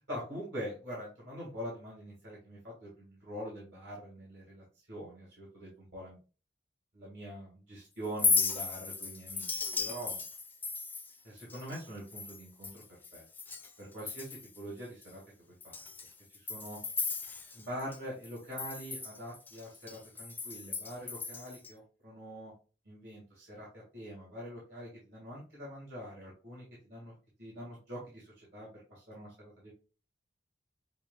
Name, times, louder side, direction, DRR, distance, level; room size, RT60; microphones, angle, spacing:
voice 1, 0.1-4.6 4.9-6.2 6.9-10.2 11.2-12.8 13.1-13.2 13.8-15.2 15.6-15.8 16.3-16.8 17.5-22.5 22.9-23.7 23.9-27.1 27.4-28.3 28.5-29.7, equal, 70° right, -5 dB, 2.1 m, -44 dB
Chink clink, 8.0-13.7 14.0-14.6 15.0-15.1 15.6-18.0 18.2-21.7, left 4 dB, 10° left, 0.3 m, -36 dB
6.4 x 2.7 x 2.4 m, 0.35 s
head